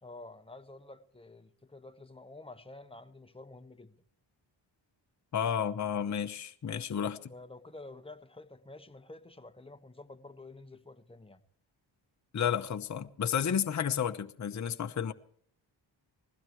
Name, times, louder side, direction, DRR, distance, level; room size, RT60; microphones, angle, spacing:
voice 1, 0.0-4.0 6.7-11.4, left 2 dB, 10° left, 1.3 m, -50 dB
voice 2, 5.3-7.2 12.3-15.1, left 8 dB, 35° left, 0.9 m, -31 dB
20.5 x 16.0 x 3.1 m
cardioid pair, 80°, 47 cm